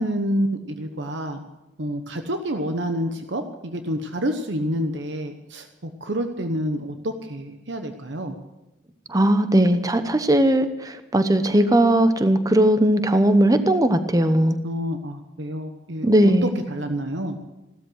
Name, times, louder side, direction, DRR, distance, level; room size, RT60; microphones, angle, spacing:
voice 1, 0.0-1.4 1.8-8.4 14.6-16.3 16.7-17.4, equal, 75° right, 6 dB, 1.1 m, -28 dB
voice 2, 9.1-14.6 16.0-16.5, right 1 dB, 20° right, 10 dB, 0.9 m, -18 dB
16.0 x 13.0 x 6.4 m, 0.98 s
head